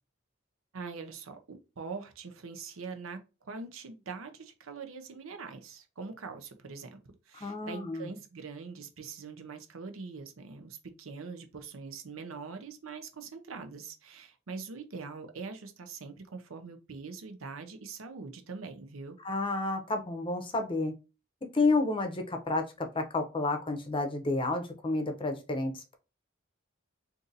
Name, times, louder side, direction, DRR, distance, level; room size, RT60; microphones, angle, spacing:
voice 1, 0.7-7.0 7.3-19.2, right 4 dB, 85° right, 0.6 m, -43 dB
voice 2, 7.3-8.1 19.2-20.9 21.5-26.0, left 3 dB, 25° left, 0.6 m, -30 dB
2.6 x 2.6 x 3.9 m
head